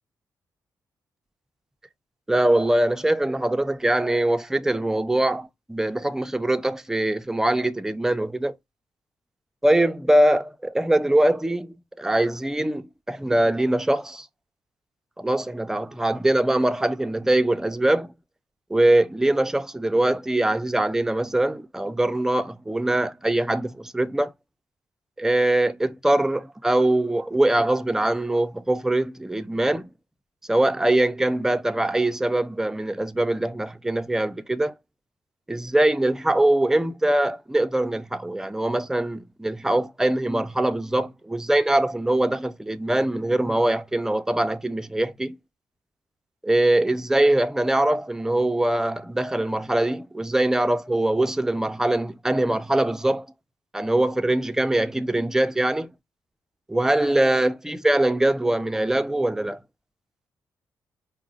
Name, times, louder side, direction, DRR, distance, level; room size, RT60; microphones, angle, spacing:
voice 1, 2.3-8.5 9.6-14.3 15.2-18.1 18.7-24.3 25.2-29.9 30.5-34.7 35.5-45.4 46.4-53.3 53.7-55.9 56.7-59.6, right 1 dB, 5° right, 0.4 m, -22 dB
4.7 x 2.0 x 3.6 m
cardioid pair, 100°, 7 cm